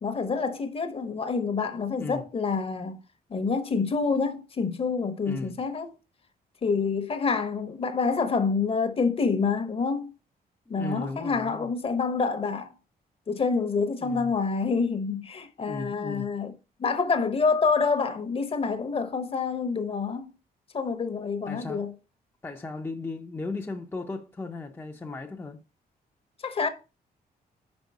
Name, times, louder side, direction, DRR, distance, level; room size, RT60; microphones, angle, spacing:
voice 1, 0.0-3.0 3.3-5.9 6.6-10.1 10.7-12.7 13.3-16.5 16.8-20.3 20.7-21.9 26.4-26.7, left 4 dB, 35° left, 0.9 m, -27 dB
voice 2, 5.2-5.6 10.7-11.7 14.0-14.3 15.7-16.3 21.5-21.8 22.4-25.6, left 3 dB, 15° left, 0.6 m, -36 dB
5.3 x 4.9 x 4.7 m
cardioid pair, 115°, 16 cm